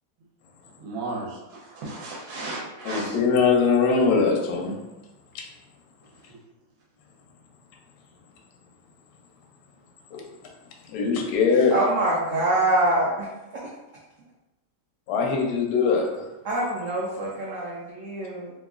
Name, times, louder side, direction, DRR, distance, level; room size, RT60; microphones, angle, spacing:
voice 1, 0.8-3.1, right 2 dB, 60° right, -4 dB, 1.1 m, -34 dB
voice 2, 2.8-4.7 5.3-5.4 10.1-10.3 10.9-11.7 15.1-16.3, left 5 dB, 70° left, 0 dB, 1.0 m, -22 dB
voice 3, 11.7-13.3 16.5-18.5, right 1 dB, 75° right, -5 dB, 0.7 m, -24 dB
2.9 x 2.5 x 2.4 m, 1.0 s
omnidirectional pair, 1.9 m